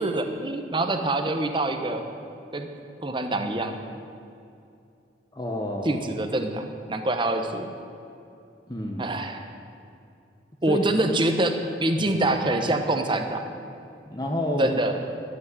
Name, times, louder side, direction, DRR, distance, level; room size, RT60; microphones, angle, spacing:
voice 1, 0.0-2.0 2.5-2.7 3.0-3.8 5.8-7.7 9.0-9.4 10.6-13.4 14.6-15.0, right 1 dB, 25° right, 6 dB, 1.0 m, -25 dB
voice 2, 5.3-6.1 8.7-9.2 10.7-10.8 12.1-12.2 14.1-14.7, equal, 20° left, 0 dB, 1.0 m, -29 dB
12.0 x 8.4 x 9.6 m, 2.6 s
head